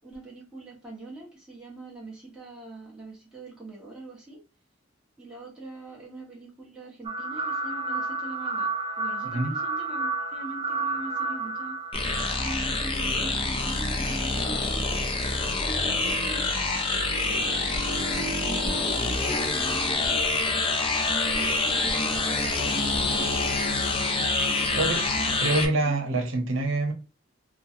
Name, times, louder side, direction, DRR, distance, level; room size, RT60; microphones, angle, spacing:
voice 1, 0.0-4.4 5.2-8.7 9.0-11.8 12.4-15.1 15.6-16.5 17.2-20.1 21.1-22.5 22.9-23.6 24.7-25.9, right 2 dB, 5° right, 1.1 m, -41 dB
sound 1, 7.0-13.1, right 3 dB, 25° right, 0.4 m, -31 dB
sound 2, 11.9-25.7, left 3 dB, 30° left, 0.5 m, -26 dB
voice 2, 25.4-26.9, right 2 dB, 85° right, 0.8 m, -25 dB
3.0 x 2.2 x 2.6 m
head